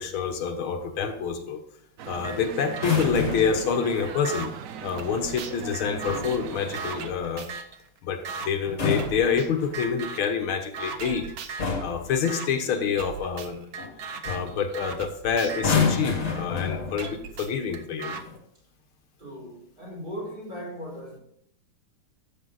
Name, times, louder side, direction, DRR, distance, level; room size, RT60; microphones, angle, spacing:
voice 1, 0.0-1.6 2.1-4.5 4.8-7.5 8.0-11.3 11.8-13.6 14.2-18.1, left 6 dB, 80° left, 5 dB, 1.9 m, -27 dB
sound 1, 2.0-7.1, right 8 dB, 90° right, 0.7 m, -39 dB
sound 2, 2.2-2.4 2.7-4.5 5.0-7.8 8.2-8.5 9.0-9.5 9.7-10.3 10.7-11.7 12.2-12.5 13.0-16.5 17.0-18.2, right 5 dB, 55° right, 1.1 m, -38 dB
sound 3, 2.7-3.7 5.8-6.4 8.6-9.9 11.0-11.2 11.6-12.1 13.8-14.0 14.3-14.6 15.5-17.2 18.1-18.4, left 5 dB, 40° left, 2.0 m, -28 dB
voice 2, 19.2-21.2, equal, 25° right, -3 dB, 5.3 m, -38 dB
12.5 x 8.1 x 4.0 m, 0.69 s
omnidirectional pair, 2.3 m